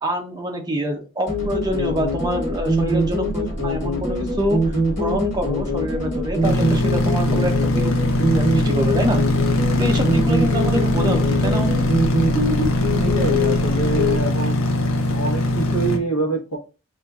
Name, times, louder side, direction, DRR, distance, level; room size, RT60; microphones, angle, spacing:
voice 1, 0.0-7.9 8.3-9.2 9.8-11.9, equal, 20° right, 0.6 m, -25 dB
sound 1, 1.3-14.2, equal, 35° left, 1.4 m, -23 dB
sound 2, 6.4-16.0, left 1 dB, 65° left, 0.6 m, -21 dB
voice 2, 12.8-14.8 15.1-16.6, right 3 dB, 85° left, 1.0 m, -26 dB
4.2 x 2.5 x 2.3 m
head